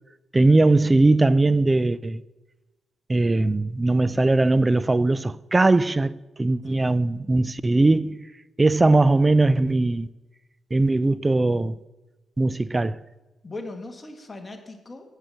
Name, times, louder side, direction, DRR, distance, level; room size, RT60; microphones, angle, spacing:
voice 1, 0.3-2.2 3.1-8.2 8.6-10.1 10.7-11.8 12.4-13.0, right 2 dB, 20° right, 0.4 m, -20 dB
voice 2, 13.4-15.2, left 2 dB, 25° left, 1.6 m, -39 dB
8.3 x 7.7 x 6.3 m
cardioid pair, 80°, 0 cm